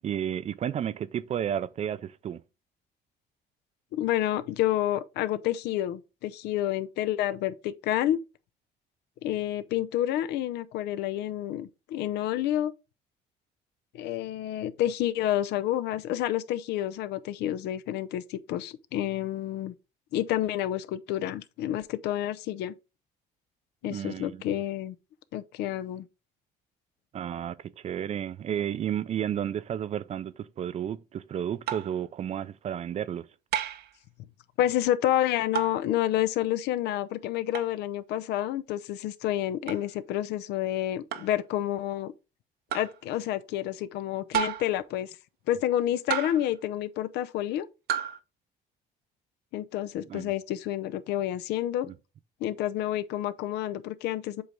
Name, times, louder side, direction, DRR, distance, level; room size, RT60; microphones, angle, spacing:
voice 1, 0.0-2.4 23.9-24.4 27.1-33.3 50.1-50.3 51.9-52.0, right 9 dB, 40° right, 0.4 m, -32 dB
voice 2, 3.9-8.2 9.2-12.7 13.9-19.7 20.1-22.7 23.8-25.0 25.3-26.1 34.6-42.1 42.7-45.1 45.5-47.7 49.5-51.9 52.4-54.4, left 12 dB, 80° left, 0.6 m, -29 dB
sound 1, 31.7-32.0 33.5-33.9 35.5-35.8 37.5-37.7 39.7-39.8 41.1-41.4 42.7-43.0 44.3-44.8 46.1-46.5 47.9-48.2, right 10 dB, 70° right, 0.7 m, -31 dB
7.8 x 3.3 x 3.7 m
cardioid pair, 110°, 17 cm